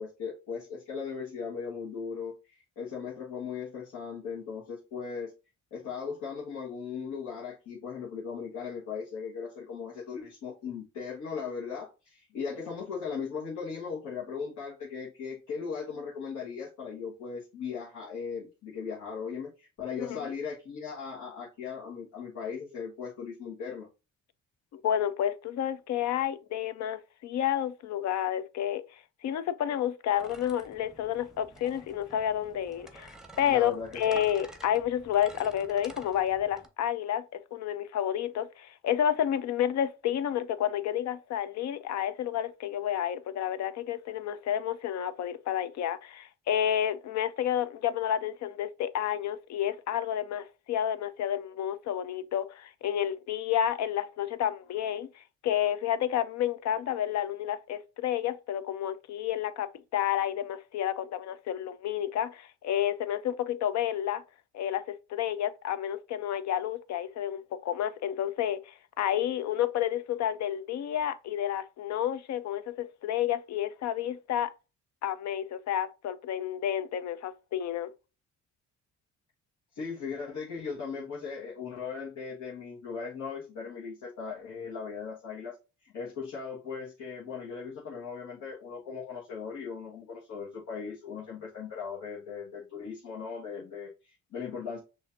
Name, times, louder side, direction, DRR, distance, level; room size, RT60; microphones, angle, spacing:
voice 1, 0.0-5.3 5.7-23.9 33.5-34.2 79.7-94.8, left 6 dB, 80° left, 1.4 m, -38 dB
voice 2, 24.7-28.8 29.2-33.1 33.4-64.2 64.5-74.5 75.0-77.9, left 10 dB, 65° left, 0.5 m, -30 dB
sound 1, 30.2-36.7, right 2 dB, ahead, 0.7 m, -49 dB
6.3 x 2.6 x 2.6 m
cardioid pair, 90°, 30 cm